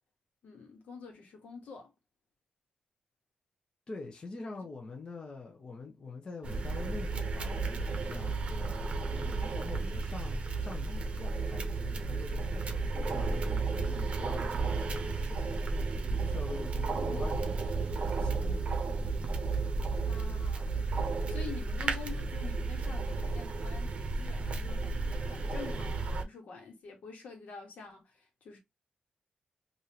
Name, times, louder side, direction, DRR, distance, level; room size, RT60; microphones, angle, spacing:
voice 1, 0.4-1.9 4.4-4.6 17.0-17.3 20.1-28.6, left 5 dB, 80° left, 1.2 m, -47 dB
voice 2, 3.9-18.7, left 3 dB, 35° left, 0.8 m, -45 dB
sound 1, 6.4-26.2, right 3 dB, 50° right, 0.6 m, -33 dB
3.5 x 2.6 x 2.8 m
wide cardioid pair, 130°, 3 cm